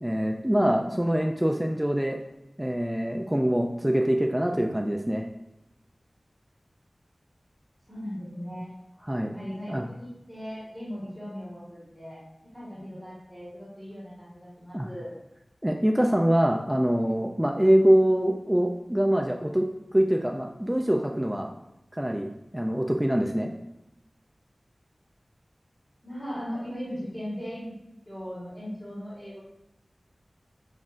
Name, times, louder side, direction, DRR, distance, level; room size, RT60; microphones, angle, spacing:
voice 1, 0.0-2.2 2.6-5.2 9.1-9.3 9.7-9.8 14.7-14.9 15.6-19.7 19.9-21.5 21.9-23.5, equal, 10° right, 2 dB, 0.3 m, -24 dB
voice 2, 7.9-8.7 9.2-12.2 12.5-15.1 26.0-27.7 28.0-29.4, equal, 10° left, -8 dB, 1.5 m, -38 dB
7.1 x 2.4 x 2.5 m, 0.92 s
wide cardioid pair, 60°, 0 cm